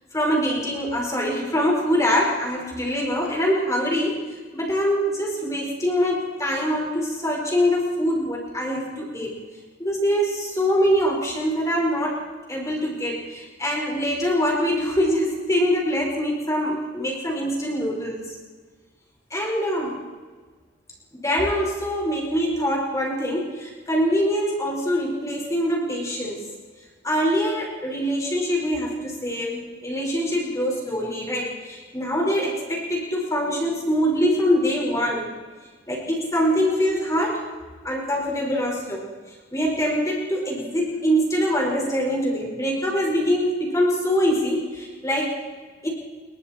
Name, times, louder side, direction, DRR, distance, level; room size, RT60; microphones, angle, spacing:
voice 1, 0.1-4.3 4.5-9.4 9.8-12.2 12.5-18.3 19.3-20.0 21.1-26.5 27.0-35.3 35.9-37.4 37.8-39.1 39.5-45.3 45.8-45.9, equal, 15° left, -1 dB, 5.0 m, -24 dB
29.0 x 22.5 x 4.5 m, 1.4 s
head